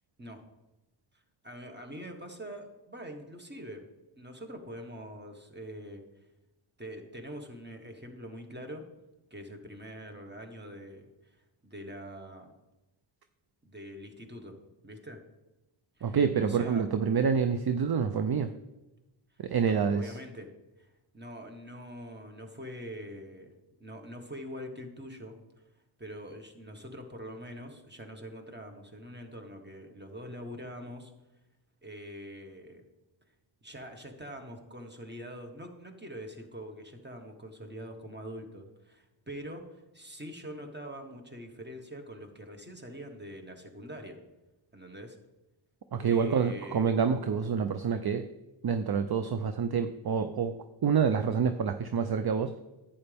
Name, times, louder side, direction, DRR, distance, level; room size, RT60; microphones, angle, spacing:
voice 1, 1.1-3.9 4.1-6.0 6.8-8.9 9.3-12.5 13.6-14.6 14.8-15.2 16.0-16.9 19.3-20.5 20.8-23.5 23.8-25.4 26.0-31.1 31.8-32.8 33.6-44.2 44.7-45.2 46.1-46.9, equal, 20° right, 4 dB, 1.5 m, -44 dB
voice 2, 16.0-18.5 19.4-20.1 45.9-48.2 48.6-52.6, right 6 dB, 50° right, 9 dB, 0.6 m, -27 dB
11.0 x 8.9 x 3.5 m, 1.0 s
wide cardioid pair, 75°, 49 cm